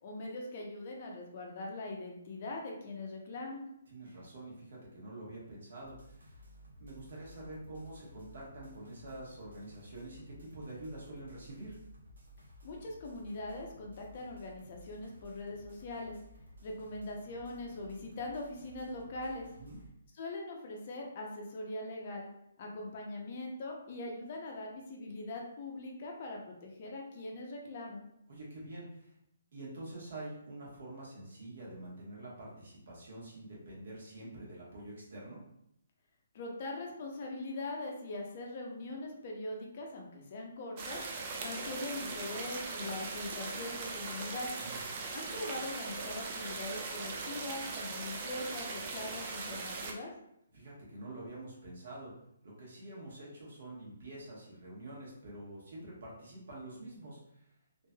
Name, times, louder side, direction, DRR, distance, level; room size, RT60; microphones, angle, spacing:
voice 1, 0.0-3.6 12.6-16.2 16.6-19.5 20.2-22.2 22.6-28.0 36.3-41.0 41.4-44.5 45.1-50.1, left 2 dB, 35° left, 0 dB, 0.6 m, -41 dB
voice 2, 3.9-6.3 6.8-11.8 19.6-19.8 28.3-29.1 29.5-35.4 44.6-44.8 50.5-52.1 52.4-57.4, right 1 dB, 55° right, -4 dB, 1.2 m, -46 dB
sound 1, 5.8-19.9, left 1 dB, 75° right, 0.8 m, -56 dB
sound 2, 40.8-49.9, right 4 dB, 25° right, 0.3 m, -40 dB
3.1 x 2.5 x 2.2 m, 0.77 s
hypercardioid pair, 170°, 0 cm